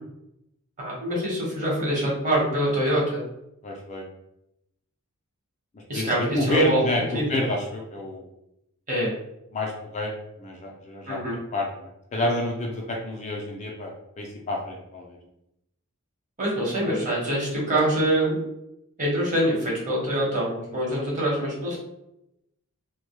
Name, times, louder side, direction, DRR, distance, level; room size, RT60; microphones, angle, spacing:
voice 1, 0.8-3.2 5.9-6.8 7.1-7.4 8.9-9.1 11.1-11.4 16.4-18.4 19.0-21.8, right 1 dB, 35° right, -5 dB, 1.0 m, -25 dB
voice 2, 3.6-4.0 5.9-8.2 9.5-10.1 10.4-11.2 11.5-15.2, left 1 dB, 30° left, -1 dB, 0.4 m, -28 dB
2.1 x 2.1 x 3.0 m, 0.84 s
head